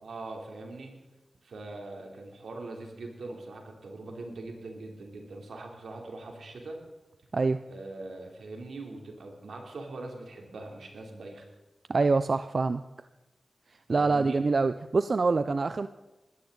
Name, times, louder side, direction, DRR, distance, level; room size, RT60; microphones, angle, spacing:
voice 1, 0.0-0.9 1.4-6.8 7.7-11.5 13.9-14.4, right 2 dB, 90° right, 1 dB, 3.1 m, -42 dB
voice 2, 11.9-12.8 13.9-15.9, right 3 dB, 60° right, 11 dB, 0.5 m, -25 dB
20.0 x 14.0 x 3.9 m, 1.1 s
cardioid pair, 55°, 0 cm